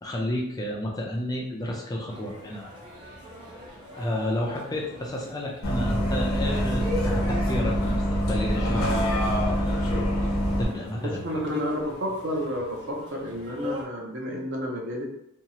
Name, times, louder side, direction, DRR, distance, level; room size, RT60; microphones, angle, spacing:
voice 1, 0.0-2.7 3.9-9.9 10.6-11.2, left 1 dB, 15° left, -1 dB, 0.3 m, -31 dB
sound 1, 2.1-13.8, left 1 dB, 20° right, 0.7 m, -41 dB
Bus, 5.6-10.6, equal, 75° left, 0.8 m, -25 dB
voice 2, 11.0-15.1, equal, 55° right, 0 dB, 0.6 m, -30 dB
2.8 x 2.3 x 2.8 m, 0.81 s
head